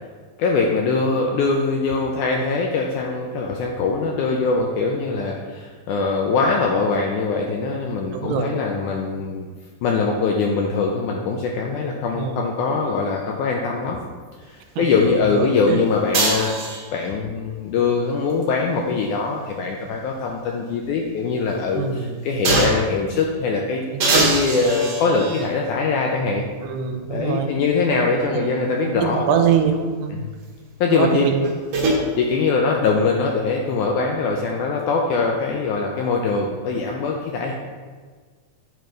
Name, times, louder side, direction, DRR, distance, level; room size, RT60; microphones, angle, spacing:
voice 1, 0.4-9.5 9.8-14.0 14.8-23.8 24.1-26.5 27.1-29.3 30.2-30.3 30.8-31.3 32.2-37.5, left 4 dB, 85° left, 0 dB, 1.8 m, -22 dB
voice 2, 8.1-8.6 12.1-12.5 14.8-14.9 15.3-15.8 21.8-22.2 23.9-24.3 26.6-27.5 28.2-28.4 28.8-30.3 30.9-31.5, right 7 dB, 85° right, 4 dB, 2.4 m, -23 dB
sound 1, 16.1-17.1 18.9-20.4 20.8-20.9 22.4-22.9 24.0-25.6 26.5-26.6 31.2-32.0, right 2 dB, 55° right, 2.1 m, -23 dB
9.0 x 3.2 x 5.1 m, 1.5 s
omnidirectional pair, 4.1 m